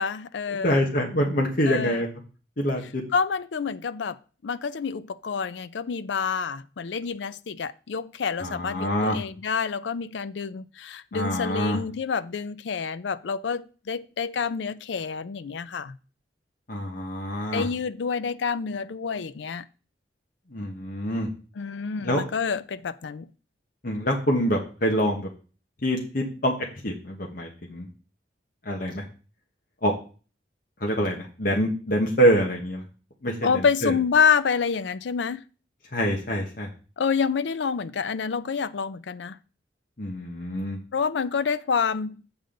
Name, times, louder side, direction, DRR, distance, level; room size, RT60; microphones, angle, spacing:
voice 1, 0.0-0.9 1.7-2.1 3.1-4.2 4.4-16.0 17.5-19.7 21.6-23.3 33.4-35.4 37.0-39.4 40.9-42.2, left 6 dB, 75° left, 0.4 m, -28 dB
voice 2, 0.6-2.1 2.6-3.0 8.4-9.2 11.1-11.8 16.7-17.7 20.5-21.3 22.0-22.2 23.8-25.3 25.8-26.5 26.8-27.9 28.6-29.0 29.8-29.9 30.8-32.8 33.2-33.3 33.8-33.9 35.9-36.7 40.0-40.8, equal, 50° left, 1.2 m, -25 dB
7.8 x 7.0 x 3.8 m
head